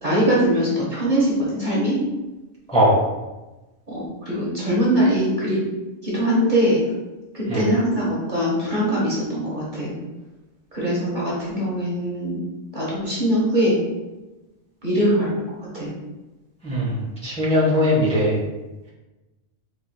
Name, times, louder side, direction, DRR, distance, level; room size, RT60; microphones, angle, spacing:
voice 1, 0.0-2.0 3.9-5.6 6.0-6.8 7.3-9.9 10.7-12.4 12.7-13.8 14.8-15.3 15.7-15.9, equal, 40° right, -6 dB, 1.3 m, -22 dB
voice 2, 16.6-17.0 17.2-18.4, equal, 5° left, -7 dB, 1.2 m, -19 dB
4.8 x 4.4 x 2.3 m, 1.1 s
omnidirectional pair, 1.3 m